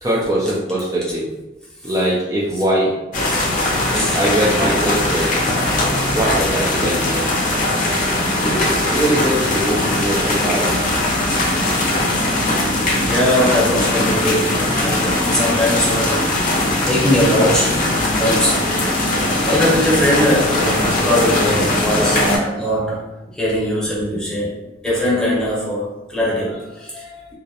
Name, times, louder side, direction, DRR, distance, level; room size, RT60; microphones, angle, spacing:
voice 1, 0.0-1.3 1.8-2.9 3.9-5.3 6.1-7.4 8.3-10.8 11.7-12.1 19.3-19.5 21.2-21.3 21.7-21.9, right 1 dB, 20° right, -5 dB, 0.3 m, -22 dB
sound 1, 3.1-22.4, left 1 dB, 45° left, 0.5 m, -19 dB
voice 2, 12.6-16.6 16.8-17.9 18.1-18.8 19.4-23.0 23.3-27.4, left 1 dB, 5° left, -8 dB, 0.8 m, -21 dB
2.3 x 2.0 x 2.7 m, 0.99 s
head